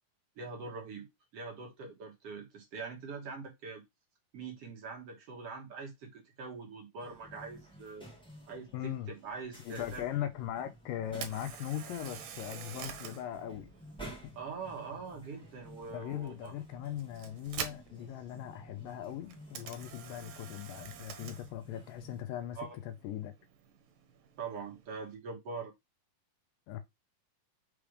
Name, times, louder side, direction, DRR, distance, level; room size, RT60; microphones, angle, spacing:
voice 1, 0.4-1.1 1.3-3.8 4.3-8.1 8.5-10.1 14.3-16.5 22.6-22.8 24.4-25.7, right 4 dB, 55° right, 2.1 m, -43 dB
sound 1, 7.0-22.2, right 1 dB, 5° left, 1.0 m, -53 dB
voice 2, 8.7-9.1 9.7-13.7 14.2-14.3 15.9-23.3 26.7-26.8, left 11 dB, 80° left, 2.4 m, -39 dB
Camera, 11.1-25.1, right 8 dB, 75° right, 2.6 m, -48 dB
6.1 x 3.4 x 5.0 m
omnidirectional pair, 4.0 m